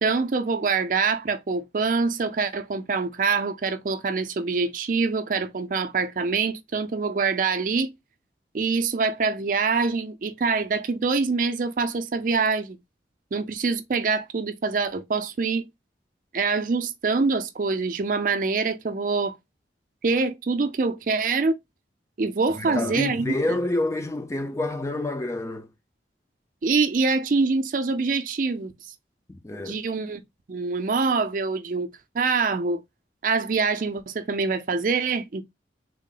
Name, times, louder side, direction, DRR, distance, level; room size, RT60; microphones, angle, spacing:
voice 1, 0.0-7.9 8.5-12.8 13.3-15.7 16.3-19.3 20.0-21.6 22.2-23.6 26.6-28.7 29.6-30.2 30.5-31.9 32.1-32.8 33.2-35.4, right 4 dB, 50° right, 0.4 m, -25 dB
voice 2, 22.6-25.7 29.4-29.8, left 1 dB, 15° left, 0.4 m, -27 dB
3.6 x 2.0 x 3.8 m
head